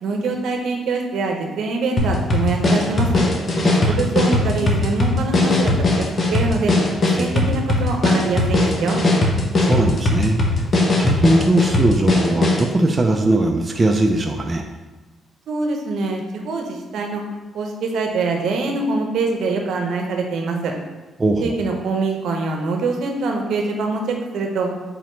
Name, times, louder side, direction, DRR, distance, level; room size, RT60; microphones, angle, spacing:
voice 1, 0.0-3.1 3.9-5.7 6.0-6.1 6.3-6.7 7.2-9.0 15.5-17.2 17.5-20.7 21.4-24.7, right 3 dB, 75° right, 2 dB, 0.7 m, -24 dB
sound 1, 2.0-12.7, left 2 dB, 40° left, 0.8 m, -19 dB
voice 2, 3.7-4.1 7.1-7.3 9.6-10.7 11.0-14.6 21.2-21.5, right 2 dB, 25° right, 3 dB, 0.4 m, -20 dB
3.9 x 3.0 x 4.4 m, 1.2 s
cardioid pair, 90°, 0 cm